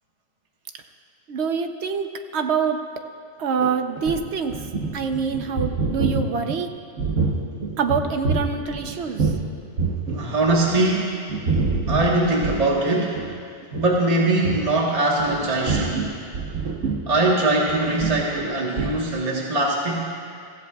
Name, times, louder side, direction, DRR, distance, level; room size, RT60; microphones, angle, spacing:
voice 1, 1.3-2.1 2.3-2.8 3.4-4.5 4.9-6.7 7.8-9.3, right 6 dB, 60° right, 6 dB, 1.0 m, -25 dB
sound 1, 3.6-9.5 9.8-11.0 11.3-12.8 13.2-13.3 13.6-13.9 14.4-14.6 15.2-18.5 18.8-19.0, right 4 dB, 80° right, 1.4 m, -26 dB
voice 2, 10.1-11.2 11.9-13.2 13.7-16.1 17.1-20.1, right 2 dB, 30° right, -3 dB, 1.4 m, -22 dB
23.5 x 15.0 x 2.4 m, 2.2 s
omnidirectional pair, 1.3 m